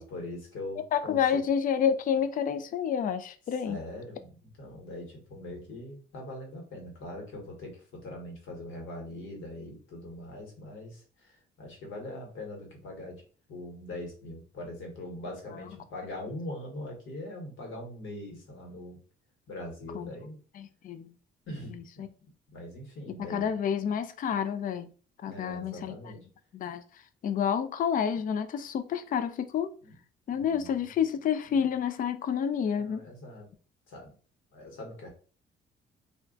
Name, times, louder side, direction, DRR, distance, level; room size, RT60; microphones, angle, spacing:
voice 1, 0.0-1.4 3.6-13.2 13.5-19.0 19.5-20.4 21.5-22.0 22.5-23.5 25.2-26.2 29.8-30.0 30.3-30.8 31.5-31.6 32.8-33.5 33.9-34.1 34.5-35.1, left 1 dB, 75° left, 1.3 m, -42 dB
voice 2, 0.8-3.8 19.9-20.1 20.6-21.1 22.0-22.1 23.1-24.9 25.2-26.0 26.5-26.8 27.2-29.7 30.3-33.0, left 8 dB, 45° left, 0.4 m, -29 dB
2.4 x 2.2 x 3.7 m
cardioid pair, 90°, 20 cm